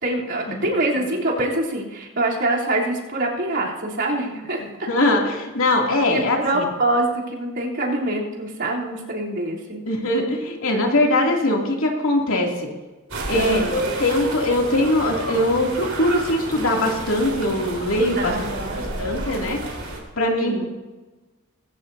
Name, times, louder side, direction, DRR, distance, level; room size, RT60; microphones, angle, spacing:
voice 1, 0.0-4.9 6.1-9.8 13.3-13.8 18.2-18.8 20.4-20.6, right 2 dB, 55° right, -4 dB, 3.4 m, -25 dB
voice 2, 4.9-6.6 9.9-12.7 13.3-18.4 18.8-19.6 20.2-20.6, left 1 dB, 75° left, 0 dB, 2.7 m, -21 dB
sound 1, 13.1-20.0, right 2 dB, 75° right, 4.3 m, -31 dB
21.0 x 16.0 x 2.8 m, 1.2 s
head